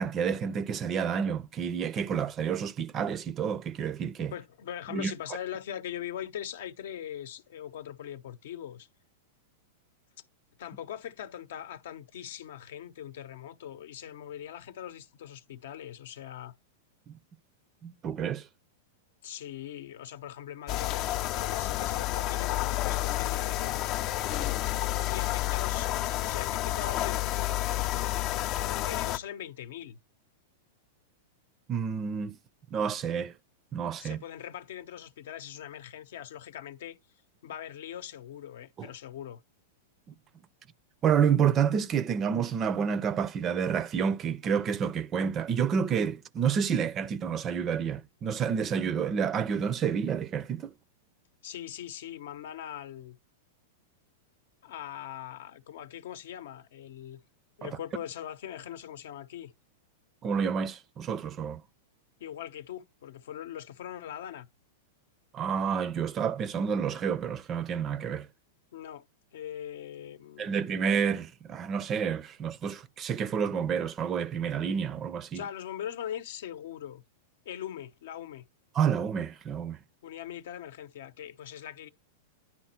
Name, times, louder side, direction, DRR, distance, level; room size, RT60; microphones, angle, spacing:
voice 1, 0.0-4.3 4.9-5.1 17.1-17.2 17.8-18.5 31.7-32.4 32.7-33.3 33.7-34.2 38.8-38.9 41.0-50.7 57.6-57.7 60.2-61.6 65.3-68.3 70.4-75.4 78.7-79.8, right 7 dB, 25° right, 0.5 m, -29 dB
voice 2, 4.3-8.9 10.6-16.5 19.2-24.0 25.1-27.4 28.5-30.0 34.0-37.0 37.4-39.4 51.4-53.2 54.6-57.2 57.6-59.5 62.2-64.5 68.7-69.1 69.3-70.7 75.3-77.0 77.4-78.4 80.0-81.9, left 10 dB, 70° left, 0.7 m, -41 dB
sound 1, 20.7-29.2, left 15 dB, 40° left, 0.4 m, -30 dB
10.0 x 4.2 x 4.3 m
supercardioid pair, 145°, 0 cm